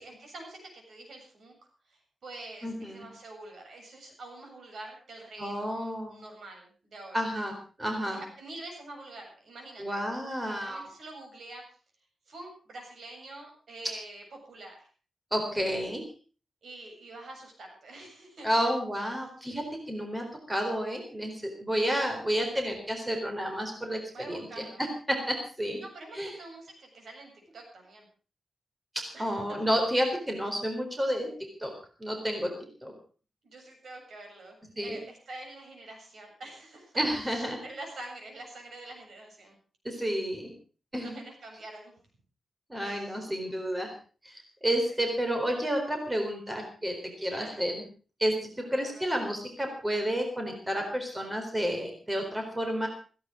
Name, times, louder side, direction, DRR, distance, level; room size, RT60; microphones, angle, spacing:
voice 1, 0.0-1.5 1.9-7.3 8.1-10.0 10.4-11.7 12.3-14.9 16.6-18.7 24.1-24.8 25.8-28.1 29.1-29.6 33.4-37.0 37.3-39.6 41.0-41.9 42.8-43.4 44.9-45.0 47.2-47.6 48.6-49.0, right 2 dB, 70° right, 2 dB, 7.7 m, -46 dB
voice 2, 2.6-3.1 5.4-6.2 7.1-8.2 9.8-10.9 15.3-16.0 18.4-25.8 26.1-26.3 29.2-31.3 31.6-31.7 32.0-32.5 32.8-32.9 34.8-35.0 37.0-37.6 39.8-40.5 40.9-41.2 42.7-43.9 44.2-47.8 48.2-52.9, equal, 15° right, 3 dB, 4.1 m, -30 dB
16.5 x 16.0 x 5.1 m, 0.38 s
wide cardioid pair, 135°, 0 cm